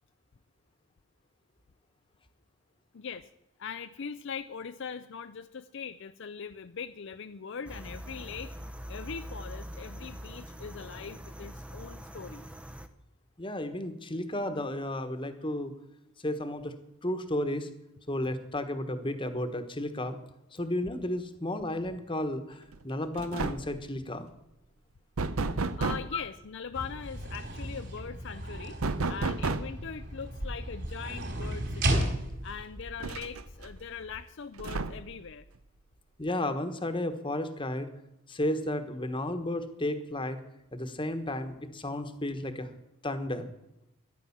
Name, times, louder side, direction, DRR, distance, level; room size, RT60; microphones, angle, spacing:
voice 1, 2.9-3.3 3.6-8.6 8.9-12.5 25.8-28.8 29.1-32.1 32.4-35.5, left 6 dB, 55° left, 10 dB, 0.5 m, -41 dB
sound 1, 7.7-12.9, equal, 5° right, 0.7 m, -43 dB
voice 2, 13.4-15.7 16.2-16.7 17.0-17.7 18.1-20.2 20.5-24.3 26.1-26.2 36.2-37.9 38.3-40.4 40.7-42.7 43.0-43.5, left 1 dB, 20° left, 9 dB, 1.3 m, -33 dB
sound 2, 22.7-22.9 23.2-23.8 25.2-26.2 28.8-29.9 31.4-31.5 31.9-32.0 33.0-33.7 34.6-35.2, right 3 dB, 70° right, 0.8 m, -32 dB
sound 3, 26.7-34.2, right 1 dB, 50° right, 4.2 m, -35 dB
14.0 x 10.5 x 7.2 m, 0.88 s
head